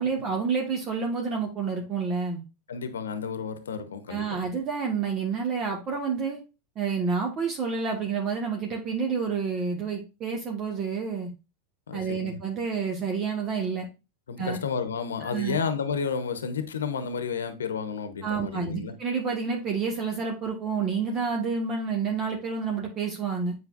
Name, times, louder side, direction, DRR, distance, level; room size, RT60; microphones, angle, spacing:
voice 1, 0.0-2.4 4.1-6.4 6.7-11.3 11.9-13.8 14.4-14.6 15.2-15.6 18.2-23.5, right 5 dB, 35° right, 1.5 m, -29 dB
voice 2, 2.7-4.4 11.9-12.4 14.3-18.9, left 6 dB, 80° left, 0.9 m, -31 dB
8.2 x 4.8 x 2.5 m
hypercardioid pair, 95°, 0 cm